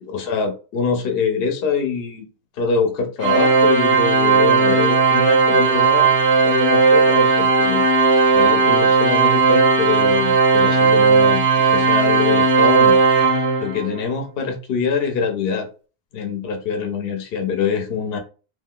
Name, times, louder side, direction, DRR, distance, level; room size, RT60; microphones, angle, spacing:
voice 1, 0.0-2.3 2.6-6.1 6.4-7.8 8.3-11.4 11.7-13.0 13.6-15.7 16.1-18.2, left 5 dB, 65° left, 6 dB, 0.8 m, -24 dB
Organ, 3.2-14.0, right 4 dB, 70° right, 0.8 m, -16 dB
2.5 x 2.3 x 3.5 m, 0.35 s
omnidirectional pair, 1.1 m